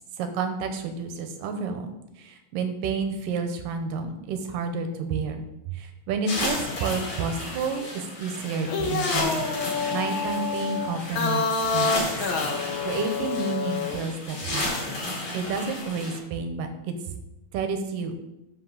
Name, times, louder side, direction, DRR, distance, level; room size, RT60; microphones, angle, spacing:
voice 1, 0.0-1.9 2.2-5.4 5.7-9.5 9.9-11.4 11.7-12.1 12.8-14.7 15.3-16.9 17.5-18.1, right 5 dB, 85° right, 7 dB, 2.6 m, -30 dB
sound 1, 6.3-16.2, left 2 dB, 35° left, 2.2 m, -33 dB
sound 2, 8.5-14.0, left 4 dB, 75° left, 1.1 m, -28 dB
12.0 x 5.4 x 4.0 m, 0.89 s
omnidirectional pair, 3.8 m